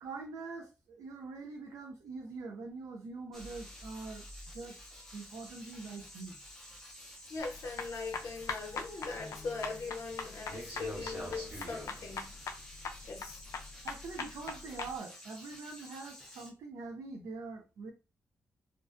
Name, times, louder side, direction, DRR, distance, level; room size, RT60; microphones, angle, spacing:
voice 1, 0.0-4.8 5.1-6.4 13.8-17.9, right 4 dB, 80° right, 0.5 m, -44 dB
sound 1, 3.3-16.5, left 1 dB, 5° left, 0.6 m, -52 dB
sound 2, 3.4-5.1 5.5-5.6 6.1-6.2 6.4-6.5 8.6-12.5, right 1 dB, 40° right, 1.2 m, -48 dB
voice 2, 7.3-12.4 13.1-13.4, left 4 dB, 60° left, 0.8 m, -40 dB
sound 3, 7.4-14.9, left 5 dB, 80° left, 0.4 m, -41 dB
2.4 x 2.2 x 2.4 m
wide cardioid pair, 135°, 5 cm